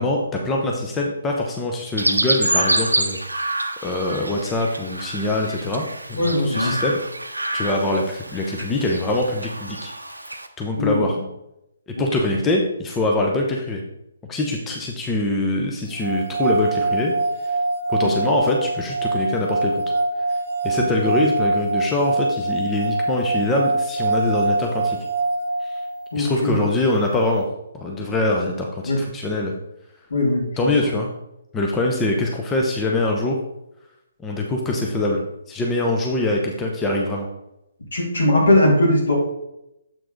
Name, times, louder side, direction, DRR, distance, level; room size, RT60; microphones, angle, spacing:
voice 1, 0.0-3.2 3.8-7.0 7.5-9.9 10.6-11.2 11.9-13.8 14.3-17.1 17.4-17.5 17.9-19.8 20.6-25.0 25.6-25.8 26.1-27.5 27.7-29.6 30.6-31.1 31.5-33.4 34.2-37.3, left 2 dB, 15° left, 0 dB, 0.8 m, -23 dB
Chirp tweet, 2.0-10.5, right 1 dB, 85° right, 0.7 m, -27 dB
voice 2, 6.1-6.8 10.8-11.2 18.0-18.1 26.1-26.6 28.9-29.0 30.1-30.7 37.9-39.1, left 1 dB, 70° left, -2 dB, 2.8 m, -20 dB
sound 1, 16.0-26.1, right 2 dB, 60° right, 0.8 m, -24 dB
7.5 x 4.6 x 3.9 m, 0.85 s
figure-of-eight pair, 135°, 0 cm